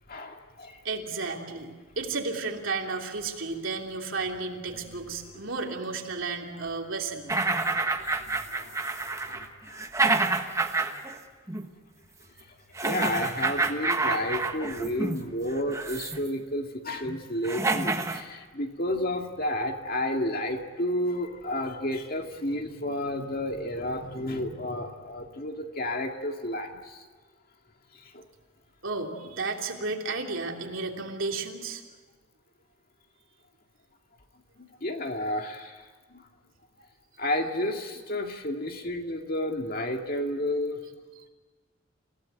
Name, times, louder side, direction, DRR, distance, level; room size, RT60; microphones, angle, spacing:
voice 1, 0.1-0.8 7.7-9.9 12.4-12.5 12.8-27.0 27.9-28.3 34.6-36.2 37.2-40.8, left 1 dB, 45° left, 3 dB, 2.2 m, -32 dB
voice 2, 0.8-7.3 28.8-31.8, right 3 dB, 65° right, 1 dB, 3.1 m, -33 dB
sound 1, 7.3-11.2 11.5-11.7 12.8-15.2 15.7-16.3 17.1-17.2 17.4-18.2, right 3 dB, 15° right, 1.3 m, -28 dB
29.0 x 17.0 x 9.2 m, 1.3 s
head